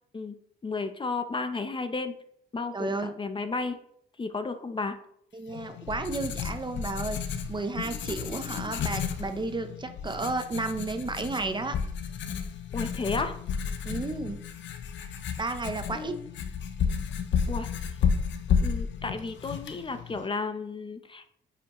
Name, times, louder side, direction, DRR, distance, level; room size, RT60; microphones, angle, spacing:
voice 1, 0.6-2.1 2.5-3.8 4.2-5.0 12.7-13.4 15.9-16.3 17.5-17.7 18.6-21.3, left 3 dB, 25° left, 8 dB, 0.7 m, -33 dB
voice 2, 2.7-3.1 5.3-7.2 7.5-11.8 13.8-14.4 15.4-16.1, right 3 dB, 25° right, 8 dB, 0.7 m, -32 dB
Writing, 5.5-20.3, left 7 dB, 65° left, 0.8 m, -32 dB
9.5 x 4.8 x 3.1 m, 0.69 s
cardioid pair, 90°, 20 cm